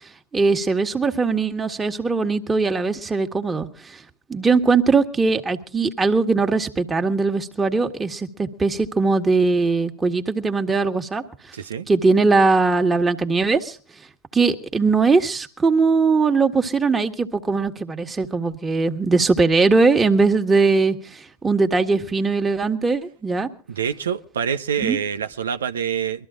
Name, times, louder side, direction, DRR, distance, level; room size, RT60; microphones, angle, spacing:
voice 1, 0.3-4.0 4.3-11.2 11.9-13.8 14.3-23.5 24.8-25.0, right 4 dB, 15° right, 1.7 m, -20 dB
voice 2, 11.5-11.9 23.7-26.3, right 8 dB, 80° right, 0.9 m, -26 dB
22.0 x 13.5 x 3.8 m
hypercardioid pair, 105°, 0 cm